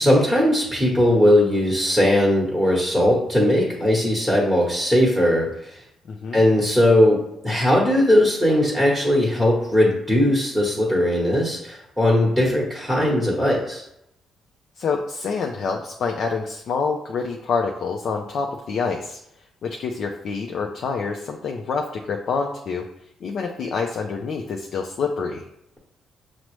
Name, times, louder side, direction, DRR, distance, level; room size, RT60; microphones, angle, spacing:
voice 1, 0.0-5.8 6.3-7.2 7.4-13.8, left 1 dB, 5° left, -5 dB, 1.1 m, -19 dB
voice 2, 6.1-6.4 14.8-19.2 19.6-22.8 23.2-25.4, left 5 dB, 60° left, 2 dB, 0.4 m, -27 dB
5.9 x 2.0 x 3.1 m, 0.79 s
cardioid pair, 90°, 0 cm